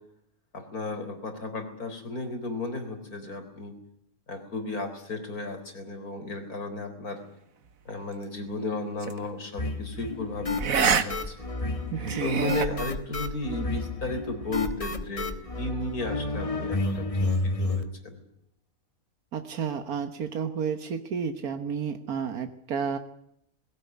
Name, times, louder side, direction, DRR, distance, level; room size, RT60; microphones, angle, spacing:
voice 1, 0.5-3.7 4.3-7.2 7.9-11.5 12.2-18.2, left 2 dB, 85° left, 8 dB, 4.4 m, -34 dB
sound 1, 9.0-9.3 10.6-11.0 11.4-11.5 12.0-12.7, right 6 dB, 70° right, 1.7 m, -25 dB
sound 2, 9.6-17.8, left 2 dB, 25° left, 1.4 m, -31 dB
voice 2, 11.9-12.6 19.3-23.0, right 6 dB, 90° right, 8 dB, 1.8 m, -31 dB
21.0 x 17.5 x 9.4 m, 0.75 s
omnidirectional pair, 1.5 m